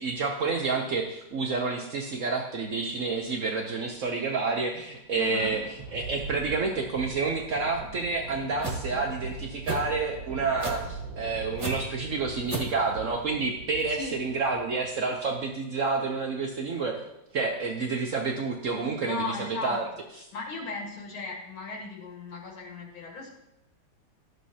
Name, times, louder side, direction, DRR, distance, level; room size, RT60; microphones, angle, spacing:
voice 1, 0.0-5.6 5.9-17.0 17.3-19.8, right 4 dB, 80° right, 2 dB, 0.7 m, -29 dB
Thunder, 4.8-15.6, right 4 dB, 65° right, 1.4 m, -41 dB
voice 2, 5.1-5.6 13.9-14.2 19.0-19.8 20.3-23.3, left 3 dB, 70° left, -2 dB, 2.3 m, -37 dB
sound 1, 8.6-8.8 9.7-9.9 10.6-10.9 11.6-11.7 12.5-12.7, right 3 dB, 15° right, 1.2 m, -31 dB
12.5 x 6.7 x 2.8 m, 0.87 s
omnidirectional pair, 2.4 m